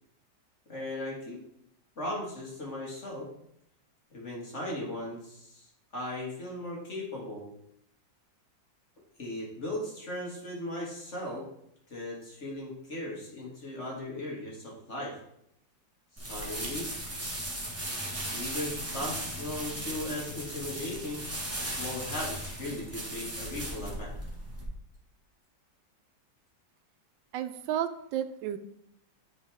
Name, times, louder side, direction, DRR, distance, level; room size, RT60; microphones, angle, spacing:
voice 1, 0.7-1.4 2.0-3.3 4.1-7.5 9.2-11.5 11.9-15.2 16.1-16.9 18.3-21.3 21.6-24.1, left 1 dB, 40° left, -3 dB, 2.0 m, -37 dB
sound 1, 16.2-24.6, right 1 dB, 10° right, 1.1 m, -37 dB
voice 2, 27.3-28.6, right 10 dB, 85° right, 10 dB, 1.3 m, -32 dB
10.0 x 4.1 x 3.5 m, 0.75 s
omnidirectional pair, 2.0 m